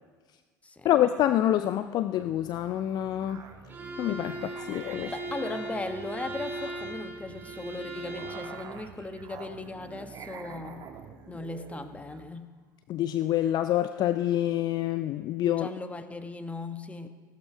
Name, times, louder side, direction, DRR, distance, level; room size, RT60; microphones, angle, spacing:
voice 1, 0.8-3.4 4.0-5.1 12.9-15.7, left 12 dB, 40° left, 12 dB, 0.5 m, -27 dB
Musical instrument, 2.2-12.3, right 6 dB, 35° right, 1.5 m, -47 dB
Bowed string instrument, 3.7-8.6, right 1 dB, 20° right, 2.9 m, -39 dB
voice 2, 5.0-10.9 11.3-12.5 15.5-17.1, left 2 dB, 10° left, 8 dB, 1.3 m, -38 dB
16.5 x 12.5 x 5.0 m, 1.5 s
figure-of-eight pair, 70°, 11 cm